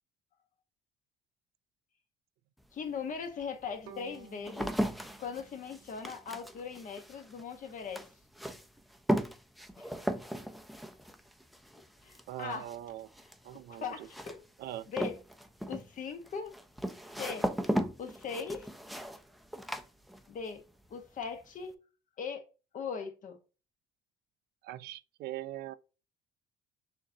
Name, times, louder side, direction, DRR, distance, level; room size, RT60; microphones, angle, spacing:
sound 1, 2.6-2.7 3.4-20.6 20.9-21.4, equal, ahead, 0.5 m, -37 dB
voice 1, 2.7-4.7 5.2-8.1 9.8-9.9 12.0-12.6 13.5-14.4 14.9-15.2 15.7-16.5 17.2-17.5 18.0-18.7 20.3-20.6 20.9-21.7 22.2-22.4 22.7-23.4, left 6 dB, 50° left, 1.0 m, -39 dB
Bowed string instrument, 3.9-6.9, right 7 dB, 90° right, 0.8 m, -56 dB
voice 2, 12.3-13.1 13.4-14.1 14.6-14.9 24.6-25.7, right 13 dB, 70° right, 0.4 m, -41 dB
6.3 x 2.8 x 2.7 m
cardioid pair, 110°, 17 cm